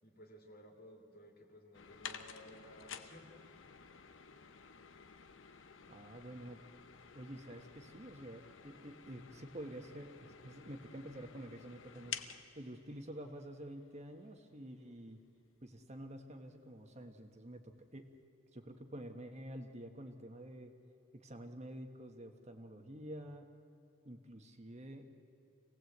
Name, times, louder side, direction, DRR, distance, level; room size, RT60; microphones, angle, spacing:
voice 1, 0.0-3.4, equal, 50° left, 2 dB, 2.7 m, -57 dB
sound 1, 1.7-13.9 14.3-14.4 15.2-15.3 15.6-15.7 16.2-16.3 16.6-16.8, left 7 dB, 70° left, 0.9 m, -52 dB
voice 2, 5.9-6.6 7.1-12.2 12.5-15.2 15.6-18.1 18.5-20.7 21.1-23.5 24.0-25.1, right 1 dB, 35° right, 5 dB, 1.3 m, -49 dB
26.5 x 18.0 x 8.0 m, 3.0 s
head